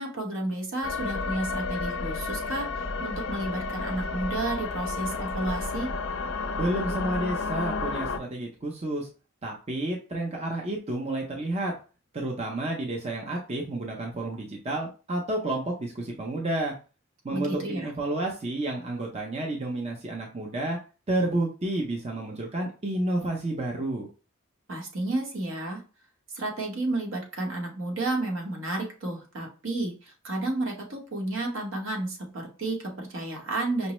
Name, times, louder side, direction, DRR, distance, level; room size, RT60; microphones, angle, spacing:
voice 1, 0.0-5.9 17.3-17.9 24.7-25.8 26.3-33.9, right 2 dB, 70° right, 0 dB, 1.0 m, -31 dB
sound 1, 0.8-8.2, left 3 dB, 65° left, 0.4 m, -31 dB
voice 2, 6.6-9.1 9.4-11.7 12.1-16.7 17.2-20.8 21.1-24.1, right 1 dB, 30° right, 0 dB, 0.5 m, -30 dB
5.2 x 2.0 x 3.0 m, 0.34 s
head